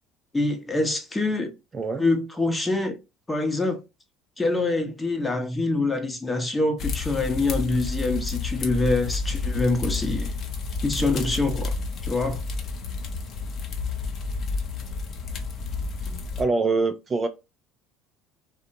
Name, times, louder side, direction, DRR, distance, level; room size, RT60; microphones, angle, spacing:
voice 1, 0.3-1.5 2.0-3.0 3.3-3.8 4.4-10.3 10.8-11.7 12.0-12.4, left 2 dB, 15° left, 0.8 m, -25 dB
sound 1, 6.8-16.4, left 3 dB, 50° left, 0.6 m, -30 dB
voice 2, 16.4-17.3, right 3 dB, 30° right, 0.3 m, -24 dB
2.7 x 2.1 x 2.5 m
supercardioid pair, 95°, 0 cm